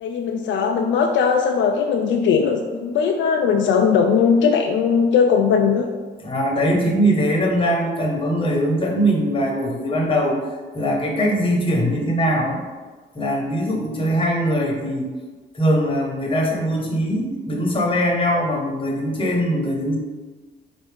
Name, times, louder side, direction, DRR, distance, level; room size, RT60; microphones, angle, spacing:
voice 1, 0.0-5.9, left 6 dB, 75° left, 2 dB, 0.4 m, -19 dB
voice 2, 6.2-10.4 10.7-12.6 13.1-15.1 15.5-20.0, equal, 25° left, -1 dB, 1.1 m, -21 dB
4.6 x 2.7 x 3.4 m, 1.4 s
cardioid pair, 90°, 20 cm